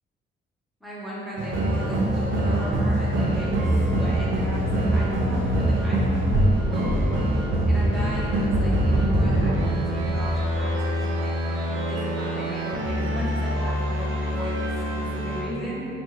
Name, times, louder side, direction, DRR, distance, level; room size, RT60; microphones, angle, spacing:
voice 1, 0.8-7.0 7.7-11.3 11.6-15.9, equal, ahead, -8 dB, 1.1 m, -35 dB
sound 1, 1.4-15.4, right 1 dB, 75° right, 0.6 m, -24 dB
4.3 x 2.5 x 3.2 m, 2.7 s
cardioid pair, 90°, 20 cm